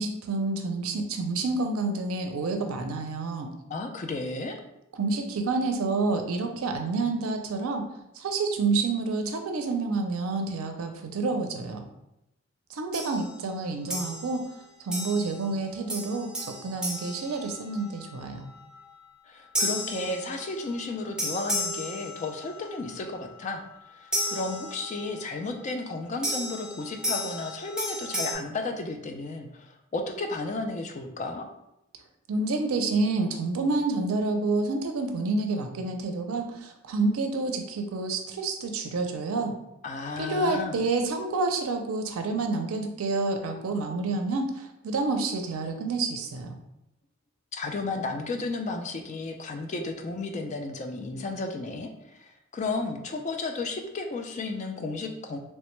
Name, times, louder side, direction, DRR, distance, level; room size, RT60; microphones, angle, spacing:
voice 1, 0.0-3.5 5.0-7.8 8.2-11.9 12.7-14.4 14.8-18.5 32.3-39.5 40.2-46.5, right 3 dB, 85° right, 5 dB, 0.4 m, -28 dB
voice 2, 3.7-4.6 19.3-23.6 23.9-31.4 39.8-40.8 47.5-55.4, left 3 dB, 35° left, 4 dB, 0.3 m, -33 dB
sound 1, 12.9-13.3 13.9-14.5 14.9-15.5 15.9-18.0 19.6-20.7 21.2-22.6 24.1-25.2 26.2-28.3, equal, 5° right, 0.6 m, -33 dB
3.2 x 2.1 x 3.0 m, 0.85 s
head